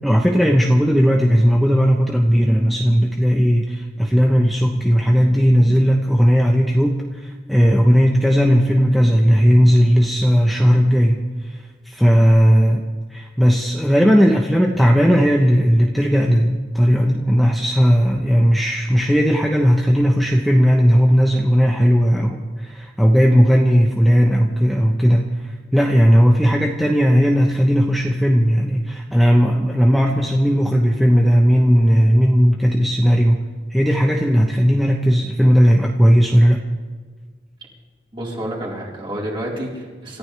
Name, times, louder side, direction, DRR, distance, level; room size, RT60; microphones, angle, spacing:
voice 1, 0.0-11.2 11.9-25.3 25.7-33.4 33.7-36.7, equal, ahead, 0 dB, 1.0 m, -16 dB
voice 2, 38.1-40.2, right 1 dB, 30° right, -4 dB, 4.4 m, -29 dB
28.0 x 14.5 x 3.4 m, 1.5 s
head